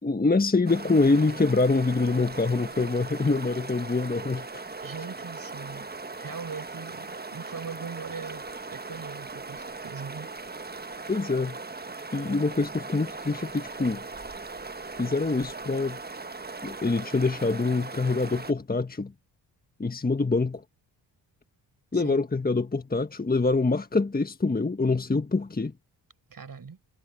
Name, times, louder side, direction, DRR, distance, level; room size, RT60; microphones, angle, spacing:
voice 1, 0.0-4.6 11.1-11.6 12.1-14.0 15.0-16.0 16.6-19.1 19.8-20.6 21.9-25.7, left 3 dB, 20° left, 1.6 m, -25 dB
sound 1, 0.7-18.5, right 3 dB, 20° right, 1.4 m, -39 dB
voice 2, 4.8-5.9 6.2-10.3 21.9-22.2 26.3-26.8, right 6 dB, 50° right, 6.0 m, -40 dB
supercardioid pair, 55°, 44 cm